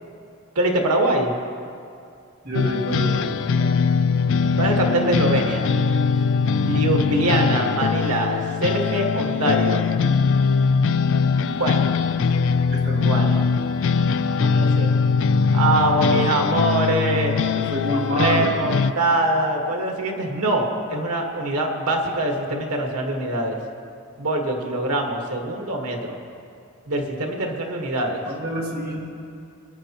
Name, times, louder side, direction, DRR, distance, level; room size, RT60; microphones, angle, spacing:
voice 1, 0.5-1.3 3.6-3.9 4.6-5.7 6.5-9.8 11.5-11.9 13.0-13.4 14.4-15.0 15.5-17.4 18.1-23.6 24.2-26.2 26.9-28.2, right 1 dB, 90° right, 2 dB, 1.5 m, -23 dB
voice 2, 2.4-3.3 11.1-11.6 12.7-13.2 16.1-16.2 17.1-17.2 17.5-18.5 28.3-29.1, equal, 45° right, -3 dB, 1.8 m, -28 dB
sound 1, 2.5-18.9, left 5 dB, 55° left, 0.3 m, -21 dB
22.0 x 9.4 x 3.0 m, 2.5 s
head